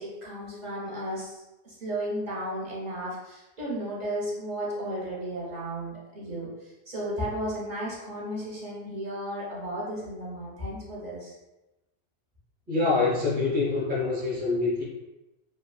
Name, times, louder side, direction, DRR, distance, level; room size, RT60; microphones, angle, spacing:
voice 1, 0.0-11.3, right 1 dB, 45° right, -6 dB, 0.8 m, -34 dB
voice 2, 12.7-14.8, left 3 dB, 10° right, -5 dB, 0.5 m, -25 dB
3.2 x 2.2 x 2.3 m, 0.99 s
omnidirectional pair, 1.1 m